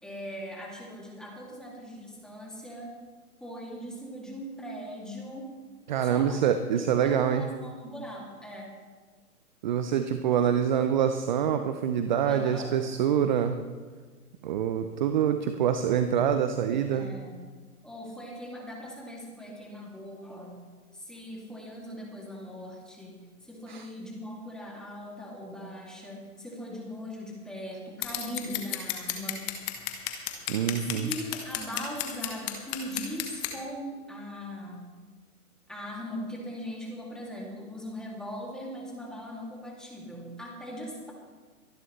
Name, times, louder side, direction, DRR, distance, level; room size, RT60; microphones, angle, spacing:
voice 1, 0.0-2.9 3.4-5.5 6.0-6.4 6.8-8.7 12.2-12.7 16.9-17.4 17.8-20.6 20.9-23.2 23.4-29.5 30.8-34.8 35.7-41.1, equal, ahead, -3 dB, 2.6 m, -40 dB
voice 2, 5.9-7.5 9.6-13.6 14.4-17.1 23.7-23.8 30.5-31.1, right 8 dB, 30° right, 8 dB, 0.7 m, -26 dB
Scissors, 28.0-33.5, left 12 dB, 25° left, 1.4 m, -33 dB
24.0 x 11.0 x 3.3 m, 1.4 s
hypercardioid pair, 140°, 46 cm